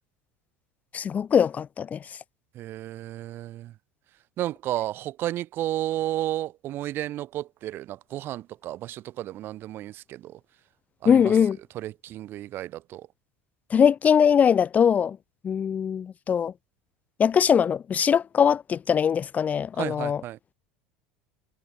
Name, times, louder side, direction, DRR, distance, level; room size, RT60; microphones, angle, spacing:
voice 1, 0.9-2.0 11.0-11.6 13.7-15.2 15.4-16.5 17.2-20.2, left 7 dB, 30° left, 1.0 m, -21 dB
voice 2, 2.5-3.7 4.4-10.4 11.0-11.4 11.7-13.1 19.8-20.4, right 14 dB, 50° right, 1.6 m, -32 dB
hypercardioid pair, 80°, 5 cm